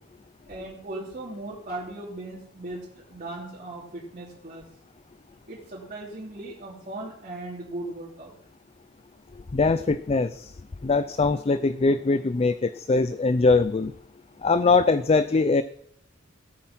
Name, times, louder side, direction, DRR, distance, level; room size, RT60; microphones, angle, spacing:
voice 1, 0.5-4.6 5.5-8.3, right 2 dB, 40° right, -7 dB, 2.9 m, -38 dB
voice 2, 9.5-10.5 10.8-13.9 14.4-15.6, left 3 dB, 30° left, 13 dB, 0.4 m, -22 dB
16.5 x 8.8 x 5.9 m, 0.71 s
head